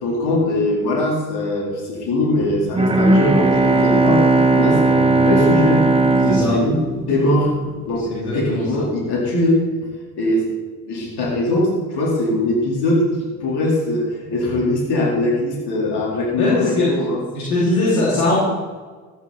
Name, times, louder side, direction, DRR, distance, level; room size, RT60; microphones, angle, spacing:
voice 1, 0.0-4.2 4.5-5.8 6.1-7.5 7.9-9.6 10.1-10.5 10.8-13.0 13.4-17.2, left 1 dB, 65° left, -3 dB, 4.4 m, -21 dB
Bowed string instrument, 2.7-7.7, right 3 dB, 15° right, 1.7 m, -17 dB
voice 2, 6.2-6.5 8.1-8.8 16.4-16.9 17.3-18.4, left 2 dB, 90° left, -8 dB, 2.9 m, -20 dB
14.0 x 11.5 x 4.4 m, 1.4 s
hypercardioid pair, 50°, 42 cm